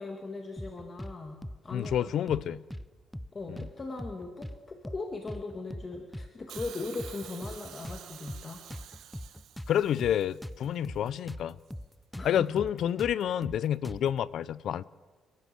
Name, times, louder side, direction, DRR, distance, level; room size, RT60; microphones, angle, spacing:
voice 1, 0.0-2.4 3.3-8.6 12.1-12.6, left 3 dB, 35° left, 2.1 m, -39 dB
sound 1, 0.6-1.2 1.4-1.6 1.8-2.9 3.1-3.3 3.6-4.6 4.8-5.0 5.3-6.3 6.6-6.7 7.0-8.4 8.7-11.4 11.7-11.9 12.1-14.2, equal, 5° left, 0.7 m, -41 dB
voice 2, 1.7-2.6 3.5-3.6 9.7-11.6 12.2-14.8, left 10 dB, 70° left, 0.6 m, -29 dB
Hiss, 6.5-10.6 11.7-11.8, right 10 dB, 80° right, 1.7 m, -49 dB
29.5 x 12.5 x 7.8 m
cardioid pair, 90°, 0 cm